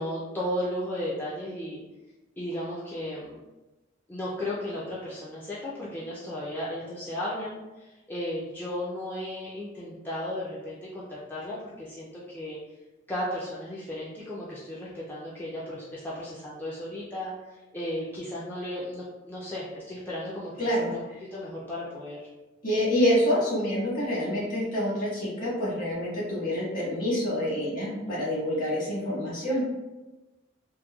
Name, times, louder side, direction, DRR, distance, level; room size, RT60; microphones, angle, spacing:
voice 1, 0.0-1.8 2.4-3.4 4.1-12.6 13.1-20.5 20.8-21.0 21.3-22.3, left 1 dB, 10° left, -8 dB, 0.3 m, -35 dB
voice 2, 20.6-20.9 22.6-29.6, equal, 45° left, -7 dB, 1.2 m, -27 dB
2.9 x 2.1 x 2.2 m, 1.1 s
head